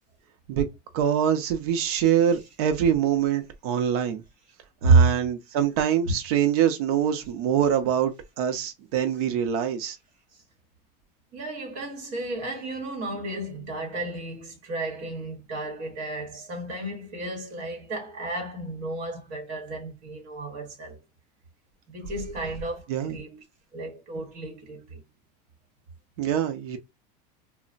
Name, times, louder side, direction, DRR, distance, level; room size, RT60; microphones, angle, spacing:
voice 1, 0.9-4.2 4.8-10.0 22.9-23.2 26.2-26.8, right 9 dB, 65° right, 0.6 m, -24 dB
voice 2, 4.8-5.2 11.3-21.0 21.9-23.4 23.7-25.0, right 3 dB, 40° right, 1.0 m, -29 dB
3.0 x 2.0 x 2.4 m
cardioid pair, 175°, 21 cm